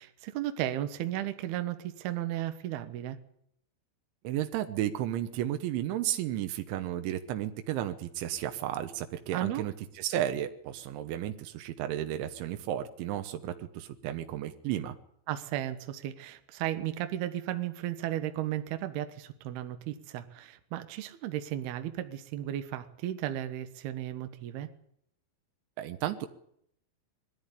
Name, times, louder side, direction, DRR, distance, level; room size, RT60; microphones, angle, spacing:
voice 1, 0.0-3.2 9.3-9.6 15.3-24.7, right 12 dB, 70° right, 9 dB, 2.8 m, -34 dB
voice 2, 4.3-15.0 25.8-26.3, right 12 dB, 85° right, 7 dB, 3.4 m, -33 dB
22.0 x 13.5 x 9.8 m, 0.71 s
omnidirectional pair, 5.3 m